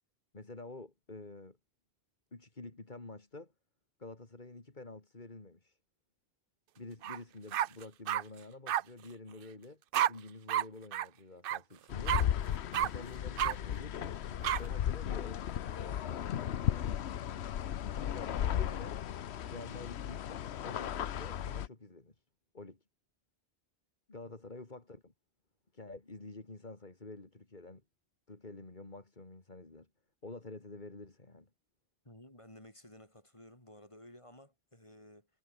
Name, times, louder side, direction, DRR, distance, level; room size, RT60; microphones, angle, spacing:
voice 1, 0.3-1.6 2.3-3.5 4.0-5.8 6.8-9.8 10.1-12.2 12.8-15.4 15.7-17.0 17.9-19.0 19.5-22.2 22.5-22.8 24.1-25.1 25.7-27.8 28.3-29.9 30.2-31.5, left 2 dB, 45° left, 2.9 m, -49 dB
sound 1, 7.0-7.2 7.5-8.2 8.7-8.8 9.9-10.1 10.5-10.6 10.9-11.1 11.4-11.6 12.1-12.2 12.7-12.9 13.4-13.5 14.4-14.6, right 12 dB, 60° right, 0.7 m, -30 dB
sound 2, 11.9-21.7, left 10 dB, 75° left, 1.0 m, -35 dB
voice 2, 32.0-35.3, left 1 dB, 25° left, 6.0 m, -55 dB
omnidirectional pair, 1.1 m